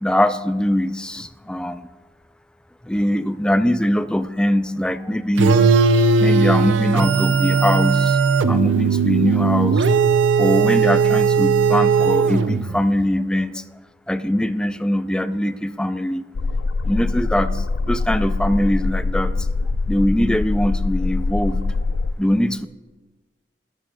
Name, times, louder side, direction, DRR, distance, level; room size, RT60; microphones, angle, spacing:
voice 1, 0.0-1.9 2.8-5.6 6.2-8.2 8.5-9.9 10.4-13.6 14.1-16.2 16.8-19.3 19.9-21.6 22.2-22.7, left 1 dB, 5° left, 11 dB, 0.3 m, -22 dB
sound 1, 5.4-12.8, right 5 dB, 80° right, 0.5 m, -17 dB
sound 2, 16.3-22.1, left 3 dB, 70° left, 0.4 m, -23 dB
13.5 x 12.0 x 2.3 m, 1.3 s
head